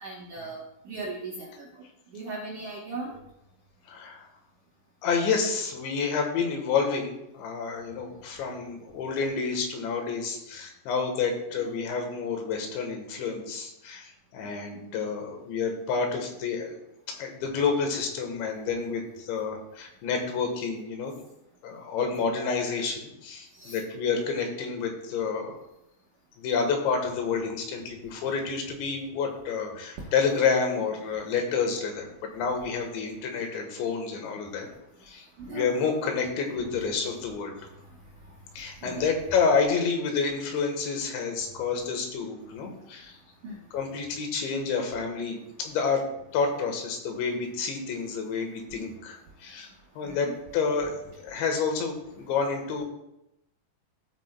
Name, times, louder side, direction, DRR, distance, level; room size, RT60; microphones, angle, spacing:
voice 1, 0.0-0.6 0.9-1.5 2.1-3.1 23.6-23.7 35.5-35.7 38.8-39.1 43.4-43.5 50.1-50.3, right 3 dB, 80° right, -1 dB, 1.8 m, -37 dB
voice 2, 3.9-4.3 5.0-16.8 17.1-21.1 21.6-25.6 26.4-34.7 35.1-37.6 38.6-43.1 43.7-46.0 46.3-49.7 50.0-52.8, left 5 dB, 75° left, 3 dB, 3.6 m, -29 dB
15.0 x 8.5 x 2.3 m, 0.85 s
omnidirectional pair, 5.4 m